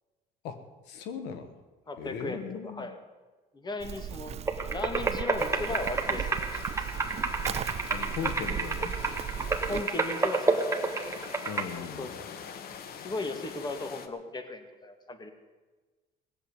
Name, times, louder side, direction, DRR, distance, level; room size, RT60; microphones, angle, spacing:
voice 1, 0.4-1.5 2.0-2.9 4.3-4.5 7.4-7.6 7.9-9.0 11.5-12.3, left 7 dB, 90° left, 9 dB, 1.3 m, -39 dB
voice 2, 1.9-3.0 3.5-4.4 4.7-6.7 9.7-10.6 11.8-12.1 13.0-15.3, left 2 dB, 25° left, 8 dB, 1.9 m, -36 dB
Livestock farm animals working animals, 3.8-9.8, right 10 dB, 40° right, 0.4 m, -37 dB
sound 1, 4.5-11.7, right 3 dB, 15° right, 1.5 m, -30 dB
sound 2, 5.4-14.1, left 7 dB, 65° left, 1.3 m, -45 dB
17.5 x 8.0 x 9.5 m, 1.3 s
cardioid pair, 110°, 17 cm